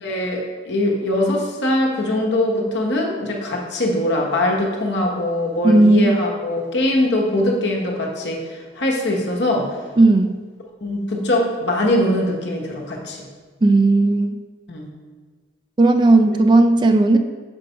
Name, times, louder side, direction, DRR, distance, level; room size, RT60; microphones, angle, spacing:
voice 1, 0.0-9.7 10.8-13.2 14.7-14.9, left 1 dB, 65° left, -1 dB, 1.1 m, -22 dB
voice 2, 5.6-6.1 10.0-10.4 13.6-14.3 15.8-17.2, right 2 dB, 25° right, 7 dB, 0.3 m, -14 dB
5.3 x 4.1 x 5.5 m, 1.4 s
head